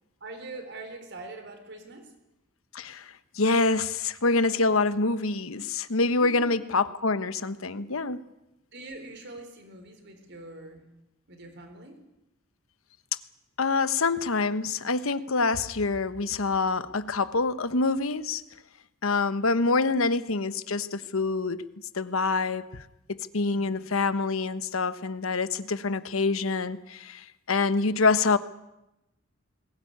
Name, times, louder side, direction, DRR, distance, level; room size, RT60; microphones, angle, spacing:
voice 1, 0.2-2.1 6.2-6.6 8.7-10.9 11.3-12.0 19.8-20.0 23.5-23.8, right 2 dB, 55° right, 6 dB, 4.3 m, -43 dB
voice 2, 2.7-8.2 13.6-18.4 19.0-21.6 21.9-22.7 23.1-28.4, left 3 dB, 80° left, 13 dB, 1.2 m, -26 dB
21.0 x 17.5 x 9.5 m, 0.91 s
head